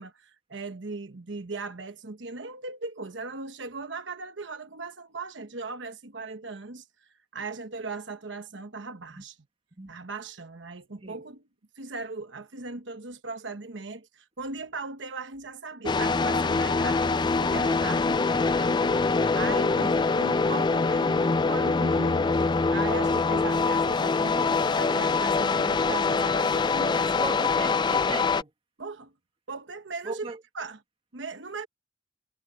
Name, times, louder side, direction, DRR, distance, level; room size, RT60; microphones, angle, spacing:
voice 1, 0.0-9.4 9.9-11.4 11.8-22.3 22.7-27.3 28.8-29.1 29.5-30.8 31.1-31.7, right 3 dB, 70° right, 1.1 m, -38 dB
sound 1, 15.9-28.4, left 4 dB, 25° left, 0.4 m, -24 dB
voice 2, 27.2-28.5 30.0-30.4, right 2 dB, 30° right, 1.8 m, -38 dB
head